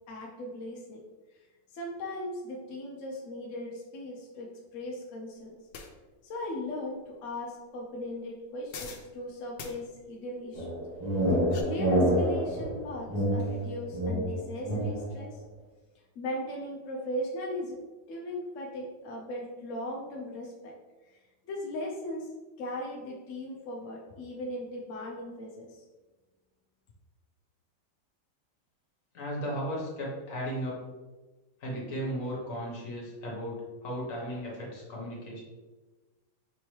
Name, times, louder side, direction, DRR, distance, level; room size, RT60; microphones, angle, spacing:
voice 1, 0.1-1.0 1.7-5.5 6.2-10.8 11.3-11.4 11.6-15.4 16.2-17.8 18.1-20.8 21.1-21.2 21.4-22.3 22.6-25.8, left 1 dB, 70° left, -1 dB, 0.7 m, -38 dB
sound 1, 5.7-5.9 8.7-9.1 9.6-9.7 11.2-11.6, left 6 dB, 85° left, 1.3 m, -42 dB
sound 2, 10.5-15.2, equal, 20° right, 0.6 m, -28 dB
voice 2, 29.1-30.8 31.6-35.4, equal, 50° left, -3 dB, 1.5 m, -35 dB
5.2 x 2.9 x 3.2 m, 1.2 s
omnidirectional pair, 2.0 m